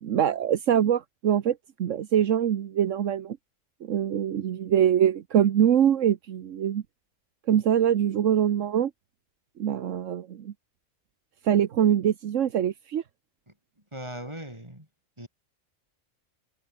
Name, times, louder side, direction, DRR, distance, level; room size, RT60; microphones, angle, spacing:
voice 1, 0.0-3.4 3.8-6.8 7.5-8.9 9.6-10.5 11.4-13.0, right 9 dB, 75° right, 1.3 m, -24 dB
voice 2, 13.9-14.9 15.2-15.3, right 1 dB, 20° right, 7.7 m, -39 dB
omnidirectional pair, 1.3 m